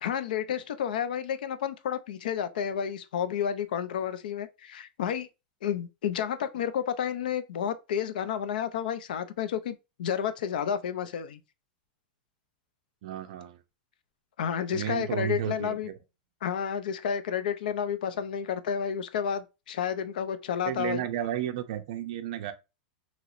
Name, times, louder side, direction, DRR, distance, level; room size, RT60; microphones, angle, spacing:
voice 1, 0.0-5.3 5.6-11.4 14.4-15.9 16.4-21.1, left 8 dB, 75° left, 0.4 m, -31 dB
voice 2, 13.0-13.6 14.7-16.0 20.7-22.5, right 11 dB, 50° right, 0.5 m, -33 dB
2.9 x 2.9 x 2.4 m
supercardioid pair, 175°, 5 cm